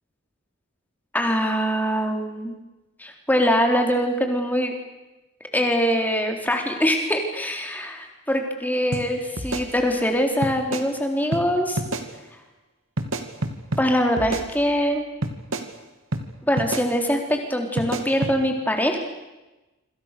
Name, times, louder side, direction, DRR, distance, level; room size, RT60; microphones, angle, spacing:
voice 1, 1.1-2.5 3.0-4.7 5.5-11.8 13.8-15.1 16.4-19.0, equal, 10° left, 3 dB, 3.9 m, -23 dB
sound 1, 8.9-9.0 9.4-10.1 10.4-10.9 11.3-11.4 11.8-12.1 13.0-13.8 14.2-14.9 15.2-15.7 16.1-16.2 16.6-16.9 17.8-18.3, right 2 dB, 75° right, 2.7 m, -28 dB
27.0 x 26.5 x 6.9 m, 1.0 s
head